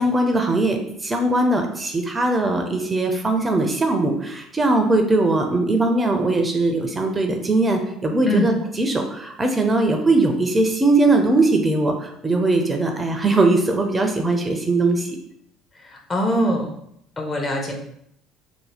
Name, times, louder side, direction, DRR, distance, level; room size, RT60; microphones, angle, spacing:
voice 1, 0.0-15.2, right 2 dB, 25° right, 4 dB, 0.5 m, -20 dB
voice 2, 15.9-16.7 17.2-17.7, equal, 30° left, 1 dB, 0.7 m, -22 dB
2.7 x 2.1 x 3.3 m, 0.73 s
hypercardioid pair, 60°, 0 cm